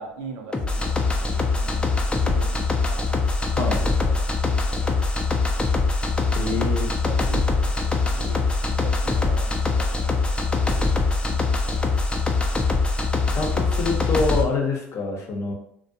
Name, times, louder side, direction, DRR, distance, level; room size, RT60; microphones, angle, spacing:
voice 1, 0.0-3.1 3.5-5.0 6.4-10.4 10.9-11.9, right 4 dB, 70° right, 3 dB, 0.5 m, -42 dB
sound 1, 0.5-14.4, left 3 dB, 15° left, 0.4 m, -23 dB
voice 2, 6.3-6.9 13.2-15.5, left 3 dB, 50° left, 1 dB, 0.7 m, -26 dB
2.5 x 2.2 x 2.6 m, 0.72 s
hypercardioid pair, 75°, 6 cm